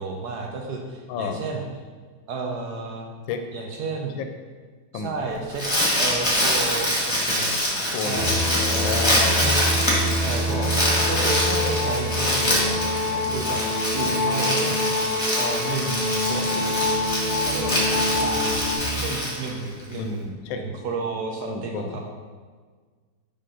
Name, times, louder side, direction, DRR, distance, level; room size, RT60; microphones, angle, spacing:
voice 1, 0.0-1.6 2.3-3.1 3.5-4.2 4.9-5.6 6.0-7.6 8.0-8.4 9.4-9.6 10.1-10.7 11.1-12.8 13.1-13.6 13.9-14.8 15.4-16.7 17.4-22.0, right 4 dB, 65° right, 1 dB, 1.1 m, -32 dB
voice 2, 1.1-1.4 3.3-3.4 4.2-4.3 4.9-5.1 7.9-9.8 19.9-20.6 21.5-22.0, left 6 dB, 80° left, 6 dB, 1.3 m, -31 dB
Crumpling crinkling, 5.3-19.9, equal, 20° left, 0.9 m, -25 dB
sound 1, 8.1-18.8, left 1 dB, 45° right, 1.5 m, -26 dB
5.2 x 3.6 x 5.6 m, 1.5 s
omnidirectional pair, 2.1 m